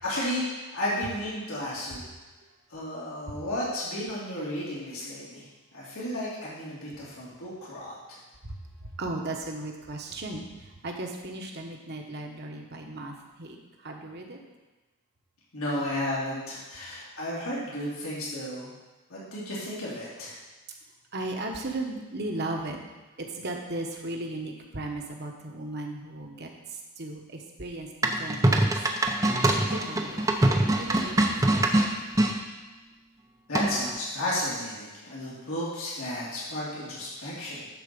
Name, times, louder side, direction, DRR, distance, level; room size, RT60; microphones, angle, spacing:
voice 1, 0.0-2.1 2.7-5.4 5.7-7.9 15.5-18.7 19.1-20.3 33.5-37.7, left 1 dB, 85° left, -7 dB, 2.8 m, -33 dB
voice 2, 8.4-14.4 15.8-15.9 21.1-22.8 23.2-28.7 29.1-30.3 30.6-31.7, right 2 dB, 50° right, 2 dB, 1.3 m, -36 dB
sound 1, 28.0-32.3 33.5-34.0, right 1 dB, 15° right, 0.7 m, -23 dB
10.5 x 4.5 x 6.8 m, 1.2 s
head